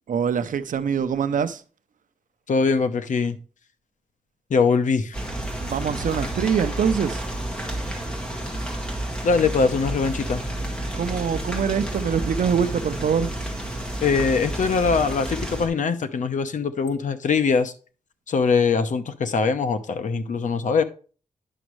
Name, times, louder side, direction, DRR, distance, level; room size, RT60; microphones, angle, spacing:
voice 1, 0.1-1.6 5.6-7.2 10.9-13.3, right 7 dB, 80° right, 0.6 m, -24 dB
voice 2, 2.5-3.4 4.5-5.2 9.2-10.4 14.0-17.7 18.3-20.8, left 5 dB, 70° left, 0.8 m, -22 dB
sound 1, 5.1-15.7, right 1 dB, 5° left, 1.8 m, -30 dB
10.0 x 6.2 x 3.1 m
wide cardioid pair, 135°, 13 cm